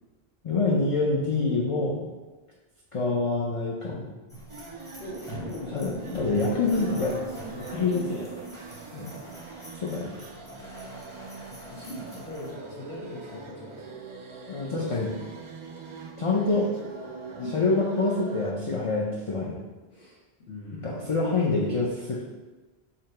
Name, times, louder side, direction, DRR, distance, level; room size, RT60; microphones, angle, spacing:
voice 1, 0.4-2.1 2.9-4.1 5.7-7.1 7.5-8.2 8.9-9.1 9.8-10.1 14.5-15.1 16.2-16.7 17.5-19.6 20.8-22.2, left 3 dB, 45° left, -3 dB, 0.4 m, -26 dB
sound 1, 4.3-12.5, right 1 dB, 5° left, 0.7 m, -44 dB
sound 2, 4.5-18.5, right 4 dB, 45° right, 0.4 m, -43 dB
voice 2, 4.9-8.4 11.7-13.9 14.6-15.2 17.4-17.6 19.9-20.2 20.5-21.1, equal, 80° left, -8 dB, 1.2 m, -40 dB
3.9 x 2.8 x 4.3 m, 1.2 s
omnidirectional pair, 1.0 m